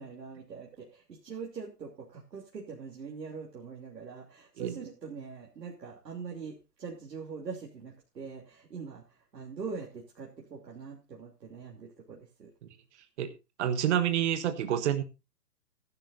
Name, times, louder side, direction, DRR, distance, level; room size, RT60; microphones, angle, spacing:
voice 1, 0.0-9.0 9.3-12.5, right 5 dB, 75° right, -2 dB, 3.2 m, -43 dB
voice 2, 13.6-15.0, right 10 dB, 45° right, 10 dB, 1.3 m, -28 dB
16.5 x 11.0 x 2.6 m, 0.27 s
hypercardioid pair, 140°, 49 cm